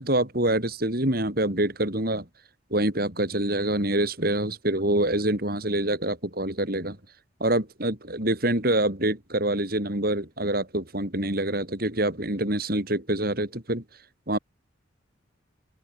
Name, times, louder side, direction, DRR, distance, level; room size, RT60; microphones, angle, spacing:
voice 1, 0.0-2.2 2.7-7.0 7.4-13.8 14.3-14.4, right 1 dB, 50° right, 4.5 m, -26 dB
open air
head